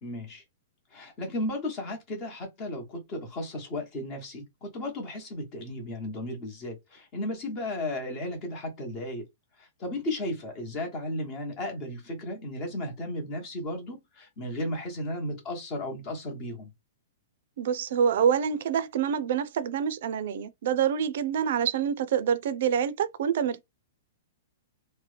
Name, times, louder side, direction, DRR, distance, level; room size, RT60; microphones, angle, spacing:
voice 1, 0.0-0.4 0.9-9.2 9.6-16.7, left 1 dB, 25° left, 1.0 m, -34 dB
voice 2, 17.6-23.6, right 8 dB, 55° right, 0.4 m, -26 dB
3.0 x 2.1 x 3.2 m
hypercardioid pair, 170°, 0 cm